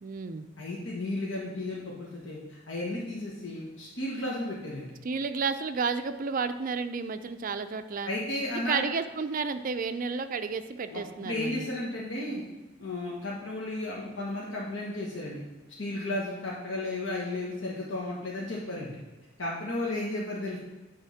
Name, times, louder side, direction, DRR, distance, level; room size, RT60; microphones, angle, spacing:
voice 1, 0.0-0.5 5.0-8.1 8.5-11.7, right 5 dB, 45° right, 10 dB, 0.4 m, -31 dB
voice 2, 0.6-4.9 8.0-8.8 10.9-12.4 12.8-15.4 15.8-19.0 19.4-20.6, left 2 dB, 75° left, -4 dB, 1.3 m, -34 dB
9.2 x 3.5 x 5.7 m, 1.2 s
head